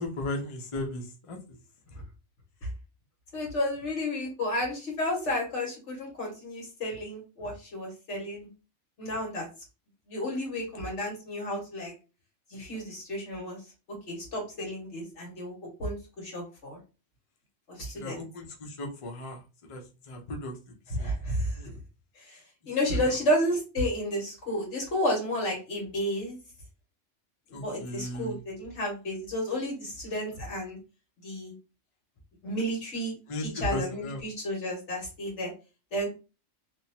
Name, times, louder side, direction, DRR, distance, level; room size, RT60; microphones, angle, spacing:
voice 1, 0.0-1.4 17.8-19.4 19.7-20.5 21.0-21.1 21.6-21.7 27.5-28.4 33.3-34.2, left 1 dB, 40° left, 1 dB, 0.4 m, -36 dB
voice 2, 3.3-8.5 9.0-9.4 10.1-11.9 12.5-13.6 14.1-15.5 15.8-16.8 17.7-18.2 20.9-21.6 22.1-22.4 22.7-26.4 27.5-30.8 31.2-31.5 32.4-35.5 35.9-36.1, left 1 dB, 65° left, 0 dB, 1.5 m, -31 dB
3.1 x 2.1 x 2.7 m, 0.31 s
omnidirectional pair, 1.3 m